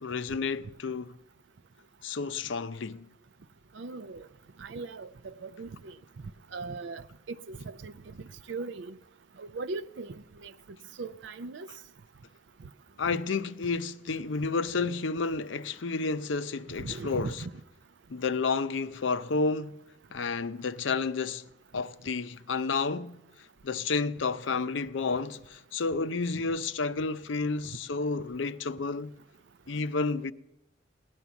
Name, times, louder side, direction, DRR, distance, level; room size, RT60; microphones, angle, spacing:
voice 1, 0.0-1.2 2.0-3.1 13.0-17.4 18.1-19.8 20.1-21.5 21.7-23.2 23.6-29.1 29.7-30.3, left 4 dB, 80° left, 0.6 m, -31 dB
voice 2, 3.7-4.3 4.6-6.0 6.5-9.0 9.4-10.5 11.0-11.7 13.0-13.2 16.8-17.5, right 3 dB, 70° right, 0.5 m, -39 dB
17.0 x 10.5 x 7.0 m
head